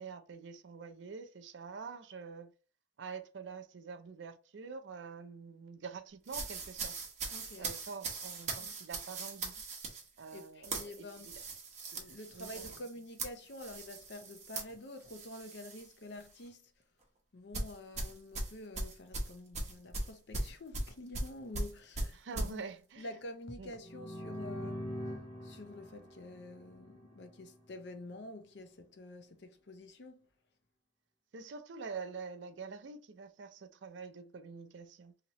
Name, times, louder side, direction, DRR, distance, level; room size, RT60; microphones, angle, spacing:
voice 1, 0.0-2.5 3.0-7.0 7.6-9.5 10.2-11.4 12.3-12.6 22.1-23.1 23.6-23.7 31.3-35.1, right 5 dB, 75° right, 0.5 m, -46 dB
sound 1, 6.3-15.9 16.2-16.5 17.5-22.5, right 2 dB, 40° right, 0.9 m, -40 dB
voice 2, 7.3-7.7 8.6-8.7 10.3-11.3 11.9-16.7 17.3-22.6 23.0-25.1 25.4-30.3, left 1 dB, 65° left, 0.6 m, -48 dB
sound 2, 23.8-27.5, equal, 45° left, 1.1 m, -43 dB
2.9 x 2.8 x 2.9 m
head